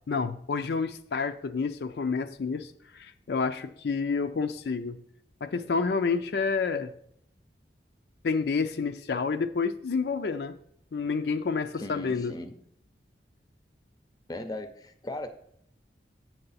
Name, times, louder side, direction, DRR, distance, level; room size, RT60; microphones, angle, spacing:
voice 1, 0.1-5.0 5.4-6.9 8.2-10.5 10.9-12.3, left 4 dB, 70° left, 8 dB, 0.4 m, -29 dB
voice 2, 11.8-12.5 14.3-15.3, left 1 dB, 20° left, 9 dB, 0.6 m, -38 dB
7.8 x 6.7 x 4.1 m, 0.70 s
head